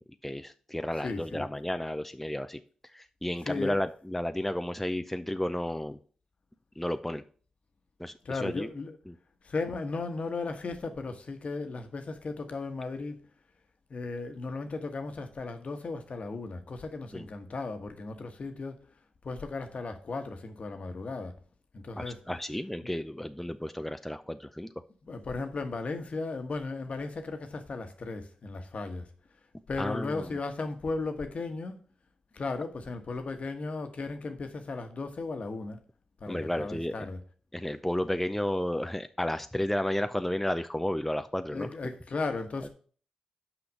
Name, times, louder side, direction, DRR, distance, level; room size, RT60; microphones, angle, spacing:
voice 1, 0.2-2.6 2.9-6.0 6.8-7.2 8.0-8.7 9.1-9.2 17.1-17.3 22.0-24.7 29.8-30.4 36.3-36.9 37.5-41.7 42.6-42.7, left 1 dB, 5° left, 0.5 m, -32 dB
voice 2, 0.9-1.4 3.4-3.9 8.2-9.0 9.4-13.2 13.9-18.8 19.2-21.3 21.7-22.2 22.8-22.9 25.0-29.1 29.7-31.8 32.3-35.8 36.2-37.2 41.5-42.7, left 3 dB, 60° left, 1.2 m, -36 dB
6.0 x 5.0 x 6.4 m
supercardioid pair, 40°, 2 cm